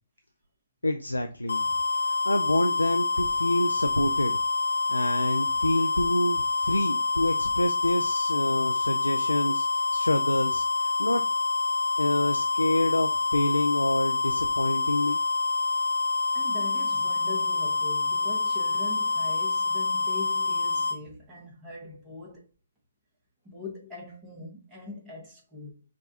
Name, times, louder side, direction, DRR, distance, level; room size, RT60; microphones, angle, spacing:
voice 1, 0.8-1.6 2.0-4.4 4.9-11.2 12.0-15.2, left 1 dB, 85° left, 0.3 m, -27 dB
sound 1, 1.5-21.0, left 4 dB, 70° left, 0.7 m, -27 dB
voice 2, 16.3-22.5 23.4-25.8, left 2 dB, 15° right, 1.1 m, -42 dB
4.7 x 2.3 x 2.7 m
figure-of-eight pair, 130°, 0 cm